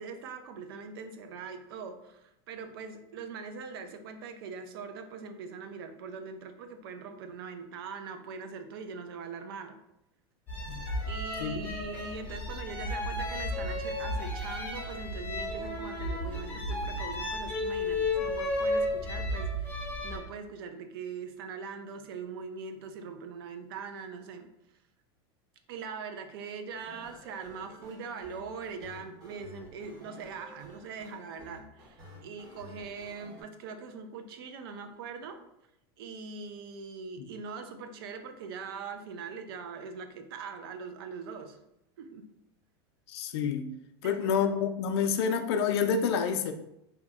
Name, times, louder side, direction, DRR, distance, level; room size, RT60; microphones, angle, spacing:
voice 1, 0.0-9.8 11.1-24.5 25.7-35.4 36.0-41.6 42.0-42.3 44.0-44.5, right 5 dB, 60° right, 7 dB, 0.4 m, -42 dB
sound 1, 10.5-20.2, left 1 dB, 10° left, 0.4 m, -33 dB
sound 2, 26.8-33.4, left 1 dB, 30° right, 0.7 m, -51 dB
voice 2, 43.1-43.7 44.0-46.5, left 6 dB, 75° left, 8 dB, 0.4 m, -28 dB
2.8 x 2.1 x 3.4 m, 0.83 s
supercardioid pair, 175°, 14 cm